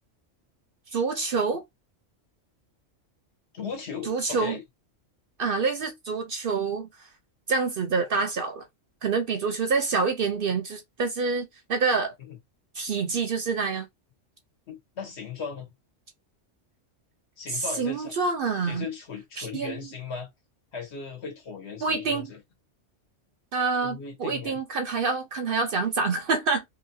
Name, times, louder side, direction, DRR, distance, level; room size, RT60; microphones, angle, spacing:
voice 1, 0.9-1.6 4.0-4.6 5.4-7.1 7.5-8.7 9.0-12.1 12.7-13.9 17.5-18.9 19.4-19.8 21.8-22.3 23.5-26.6, right 4 dB, 60° right, 0.6 m, -27 dB
voice 2, 3.5-4.6 12.3-12.4 14.7-15.7 17.4-18.1 18.6-20.3 20.7-22.4 23.8-24.6, left 5 dB, 60° left, 1.3 m, -37 dB
2.9 x 2.7 x 2.6 m
omnidirectional pair, 1.3 m